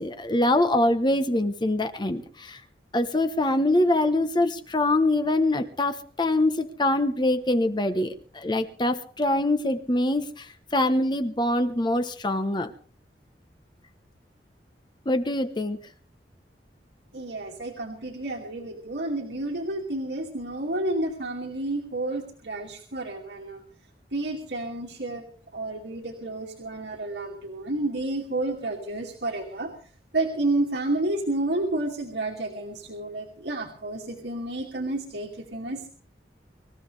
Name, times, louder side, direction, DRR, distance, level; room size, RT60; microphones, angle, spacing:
voice 1, 0.0-2.6 2.9-12.7 15.0-15.8, left 1 dB, 25° left, 8 dB, 1.1 m, -24 dB
voice 2, 17.1-23.6 24.1-25.2 25.5-29.7 30.1-35.9, right 2 dB, 70° right, -1 dB, 2.7 m, -30 dB
25.0 x 15.0 x 3.5 m, 0.43 s
head